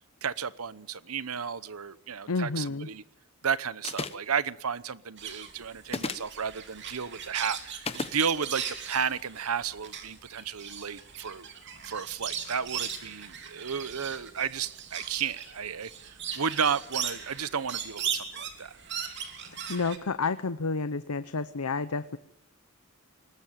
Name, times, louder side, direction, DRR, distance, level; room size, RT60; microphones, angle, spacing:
voice 1, 0.2-3.0 3.4-11.5 11.8-18.7, right 7 dB, 80° right, 17 dB, 0.9 m, -33 dB
voice 2, 2.3-2.9 19.7-22.2, left 4 dB, 90° left, 12 dB, 0.8 m, -30 dB
sound 1, 3.8-4.3 5.8-6.3 7.8-8.2, left 3 dB, 25° left, 1.0 m, -33 dB
sound 2, 5.2-20.0, right 8 dB, 55° right, 3.1 m, -38 dB
22.0 x 19.5 x 9.2 m, 0.77 s
head